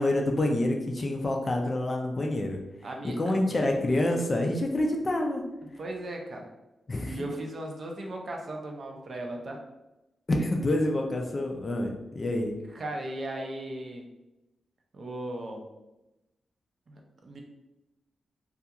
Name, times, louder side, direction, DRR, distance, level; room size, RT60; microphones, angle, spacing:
voice 1, 0.0-2.6 3.0-5.4 6.9-7.2 10.3-12.6, left 1 dB, 30° left, 1 dB, 0.3 m, -27 dB
voice 2, 2.8-3.2 5.8-6.5 7.1-9.6 12.7-14.0 14.9-15.7 16.9-17.4, right 1 dB, 45° right, 1 dB, 0.4 m, -37 dB
2.3 x 2.3 x 2.8 m, 0.97 s
wide cardioid pair, 150°, 0 cm